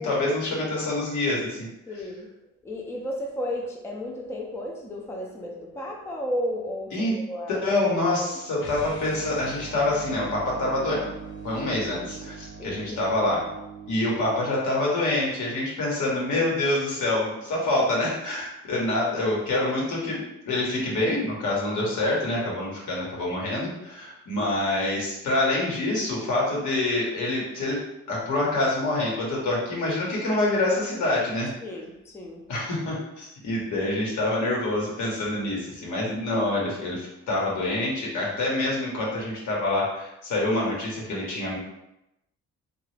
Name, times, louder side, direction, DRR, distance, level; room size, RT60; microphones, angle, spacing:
voice 1, 0.0-1.7 6.9-7.2 7.5-11.1 11.4-13.4 13.9-31.5 32.5-41.6, left 2 dB, 75° left, -4 dB, 1.2 m, -26 dB
voice 2, 1.9-2.3 2.6-7.6 8.5-8.6 12.6-13.0 31.6-32.4 33.7-33.9, left 1 dB, 10° left, 0 dB, 0.4 m, -33 dB
sound 1, 8.5-14.6, right 4 dB, 40° left, 0.7 m, -41 dB
2.8 x 2.4 x 3.2 m, 0.88 s
cardioid pair, 90°, 30 cm